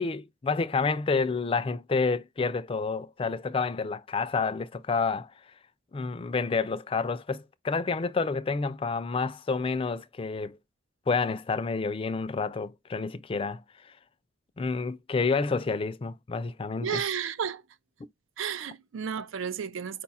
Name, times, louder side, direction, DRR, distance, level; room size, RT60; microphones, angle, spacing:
voice 1, 0.0-5.3 5.9-10.6 11.1-13.6 14.6-17.0, left 4 dB, 30° left, 0.3 m, -29 dB
voice 2, 16.8-17.6 18.4-20.0, right 7 dB, 90° right, 0.5 m, -32 dB
4.7 x 2.3 x 4.1 m
head